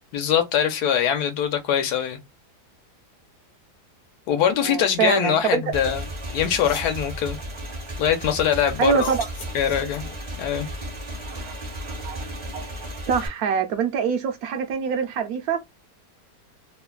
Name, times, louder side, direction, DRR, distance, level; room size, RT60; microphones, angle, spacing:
voice 1, 0.1-2.2 4.3-6.0 6.3-7.4 8.0-9.1 9.5-10.0 10.4-10.7, left 9 dB, 75° left, 1.2 m, -22 dB
voice 2, 4.6-5.6 8.8-9.3 11.2-12.2 12.5-12.7 13.1-15.6, right 7 dB, 70° right, 0.9 m, -25 dB
Motorcycle / Engine, 5.7-13.3, equal, 35° right, 0.5 m, -34 dB
sound 1, 6.0-6.1 6.4-7.0 8.9-10.2, left 4 dB, 55° left, 1.2 m, -40 dB
3.1 x 2.1 x 2.2 m
omnidirectional pair, 1.8 m